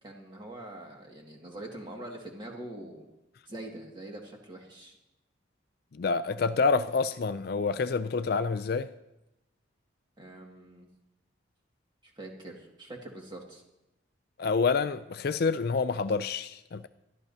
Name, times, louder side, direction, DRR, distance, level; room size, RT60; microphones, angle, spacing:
voice 1, 0.0-3.1 3.5-5.0 10.2-10.9 12.0-13.6, right 1 dB, 25° right, 2.0 m, -44 dB
voice 2, 5.9-8.9 14.4-16.9, left 4 dB, 50° left, 0.4 m, -27 dB
21.5 x 12.5 x 2.8 m
head